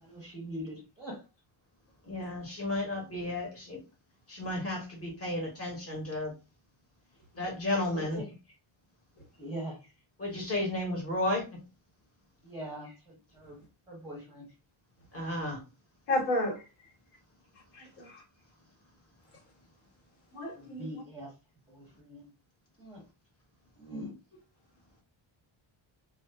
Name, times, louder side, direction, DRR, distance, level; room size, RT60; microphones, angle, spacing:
voice 1, 0.0-1.2 7.9-8.3 9.4-9.8 12.4-13.6 13.9-14.4 20.5-21.3 21.7-22.3 22.8-23.0 23.8-24.1, right 1 dB, 5° right, 0.6 m, -42 dB
voice 2, 2.0-3.8 4.3-6.3 7.4-8.2 10.2-11.5 15.1-15.6, left 1 dB, 30° left, 0.9 m, -33 dB
voice 3, 16.1-16.6 17.7-18.2 20.3-21.0, left 1 dB, 85° left, 1.5 m, -32 dB
2.4 x 2.4 x 2.2 m
cardioid pair, 170°, 50 cm